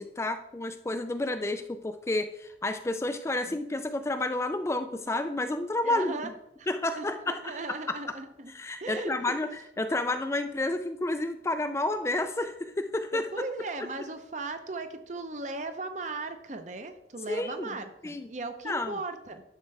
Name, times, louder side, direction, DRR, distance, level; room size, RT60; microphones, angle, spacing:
voice 1, 0.0-6.3 6.7-7.5 7.9-8.0 8.5-9.5 9.8-13.3 17.3-17.7 18.0-18.3 18.7-19.0, left 2 dB, 15° left, 8 dB, 0.3 m, -30 dB
voice 2, 5.8-6.3 6.6-6.7 7.0-8.5 8.8-9.4 13.1-19.4, right 3 dB, 40° right, 8 dB, 0.7 m, -37 dB
10.5 x 6.4 x 3.3 m, 0.82 s
head